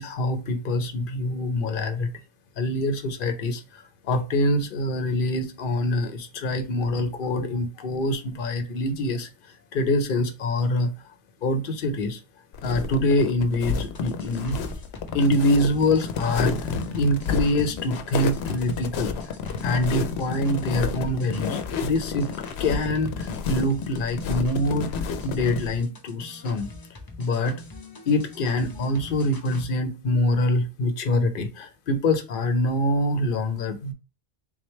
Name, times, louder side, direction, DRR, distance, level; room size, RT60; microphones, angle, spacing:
voice 1, 0.0-2.1 2.6-9.3 9.7-10.9 11.4-12.2 12.6-14.6 15.1-19.3 19.6-22.3 22.6-26.7 27.2-27.6 28.1-33.9, left 1 dB, 60° left, 0.8 m, -25 dB
sound 1, 12.5-25.7, left 6 dB, 90° left, 0.8 m, -30 dB
sound 2, 13.7-29.7, left 2 dB, 25° left, 0.6 m, -44 dB
3.8 x 3.1 x 3.1 m
omnidirectional pair, 1.0 m